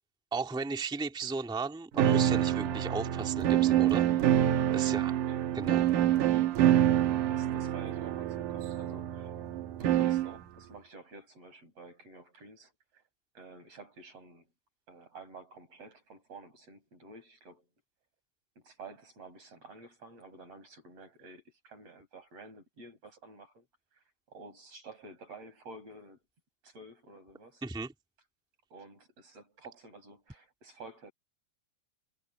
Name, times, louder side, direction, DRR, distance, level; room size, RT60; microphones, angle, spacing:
voice 1, 0.3-4.1 4.7-5.1 5.5-5.8 27.6-27.9, right 4 dB, ahead, 1.3 m, -35 dB
sound 1, 2.0-10.4, right 11 dB, 80° right, 2.7 m, -26 dB
voice 2, 4.8-5.5 7.2-9.4 9.8-13.0 13.4-14.5 14.9-17.7 18.6-23.7 24.3-26.2 26.6-27.6 28.7-31.1, right 3 dB, 50° right, 8.7 m, -51 dB
omnidirectional pair, 3.7 m